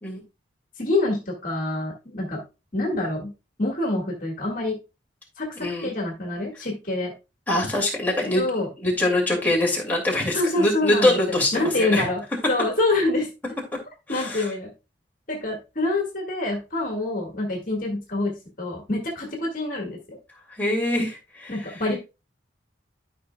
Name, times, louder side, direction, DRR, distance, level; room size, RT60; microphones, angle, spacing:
voice 1, 0.8-2.4 2.7-3.3 3.6-4.8 5.4-7.1 8.2-8.7 10.3-13.3 14.1-14.7 15.3-20.2 21.5-22.0, left 2 dB, 45° left, 1 dB, 1.8 m, -26 dB
voice 2, 5.6-5.9 7.5-8.5 8.8-12.1 14.1-14.5 20.6-21.6, left 1 dB, 10° left, -2 dB, 2.3 m, -23 dB
12.5 x 5.4 x 2.3 m, 0.27 s
head